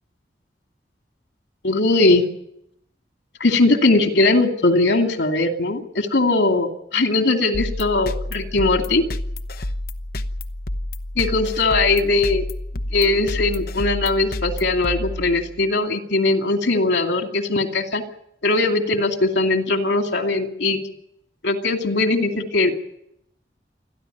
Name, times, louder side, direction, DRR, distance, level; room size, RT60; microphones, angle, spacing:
voice 1, 1.6-2.2 3.4-9.0 11.2-12.4 12.9-18.0 18.4-20.8 21.4-22.8, left 2 dB, 85° left, 4 dB, 2.6 m, -20 dB
sound 1, 7.5-15.7, left 1 dB, 55° left, 1.0 m, -29 dB
28.5 x 11.0 x 9.2 m, 0.77 s
head